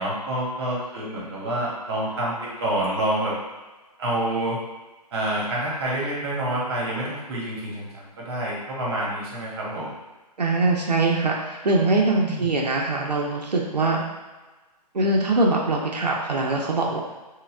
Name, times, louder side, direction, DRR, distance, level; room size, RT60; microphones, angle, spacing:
voice 1, 0.0-3.3 4.0-4.6 5.1-9.9 12.2-12.5, right 1 dB, 40° right, -5 dB, 1.1 m, -27 dB
voice 2, 10.4-14.0 14.9-17.0, right 2 dB, 75° right, -1 dB, 0.6 m, -22 dB
4.0 x 2.3 x 2.4 m, 1.2 s
figure-of-eight pair, 130°, 21 cm